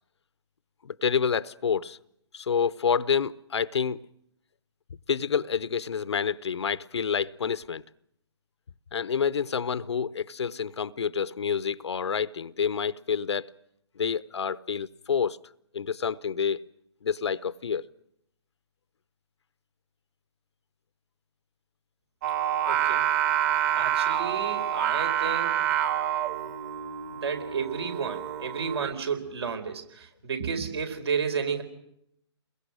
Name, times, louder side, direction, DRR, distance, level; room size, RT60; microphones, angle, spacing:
voice 1, 0.8-2.0 2.3-4.0 5.1-7.8 8.9-13.5 14.0-15.4 15.7-16.6 17.0-17.8, left 7 dB, 65° left, 0.9 m, -28 dB
Singing, 22.2-28.9, right 10 dB, 35° right, 2.3 m, -27 dB
voice 2, 22.6-23.0 23.7-25.7 27.2-31.6, right 6 dB, 60° right, 4.9 m, -32 dB
29.5 x 22.0 x 6.4 m
figure-of-eight pair, 135°, 15 cm